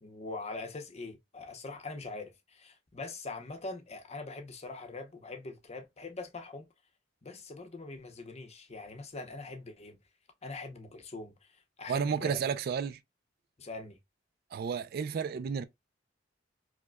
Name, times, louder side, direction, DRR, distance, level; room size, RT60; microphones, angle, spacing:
voice 1, 0.0-6.7 7.2-10.0 10.4-12.4 13.6-14.0, left 3 dB, 35° left, 0.7 m, -43 dB
voice 2, 11.9-13.0 14.5-15.6, right 6 dB, 55° right, 0.3 m, -32 dB
4.7 x 2.1 x 2.2 m
head